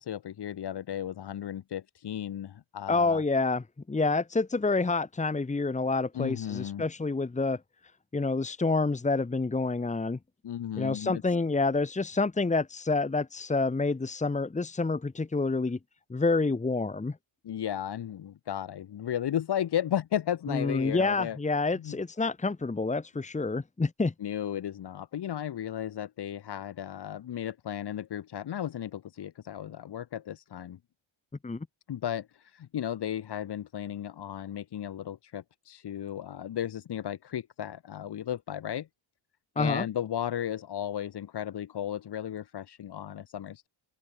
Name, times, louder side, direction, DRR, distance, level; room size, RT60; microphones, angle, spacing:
voice 1, 0.0-3.2 6.1-6.8 10.4-11.2 17.4-21.4 21.7-22.0 24.2-30.8 31.9-38.9 39.6-43.7, left 10 dB, 55° left, 3.4 m, -34 dB
voice 2, 2.9-7.6 8.1-10.2 10.8-15.8 16.1-17.2 20.5-24.1 31.4-31.6 39.6-39.9, left 3 dB, 15° left, 2.1 m, -28 dB
open air
cardioid pair, 145°, 48 cm